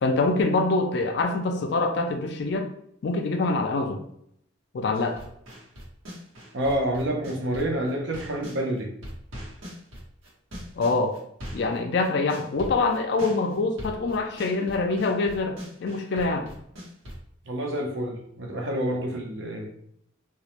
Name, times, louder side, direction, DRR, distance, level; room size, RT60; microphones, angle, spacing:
voice 1, 0.0-2.7 3.0-4.0 4.7-5.2 10.8-11.2 11.5-16.5, left 3 dB, 55° left, 5 dB, 0.3 m, -25 dB
sound 1, 4.9-8.6 9.0-17.2, equal, 85° right, 1.0 m, -40 dB
voice 2, 6.5-8.9 17.5-19.7, right 1 dB, 70° right, 1 dB, 0.6 m, -28 dB
2.2 x 2.0 x 2.8 m, 0.70 s
head